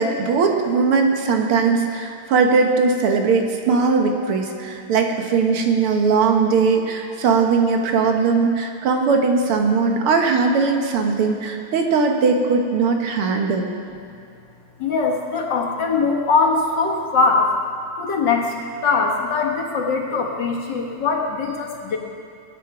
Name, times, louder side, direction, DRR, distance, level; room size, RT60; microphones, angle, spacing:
voice 1, 0.0-13.7, right 4 dB, 85° right, 3 dB, 2.2 m, -19 dB
voice 2, 14.8-17.5 18.0-18.5 18.8-22.0, left 4 dB, 60° left, 0 dB, 2.0 m, -21 dB
22.0 x 9.2 x 4.9 m, 2.5 s
omnidirectional pair, 2.4 m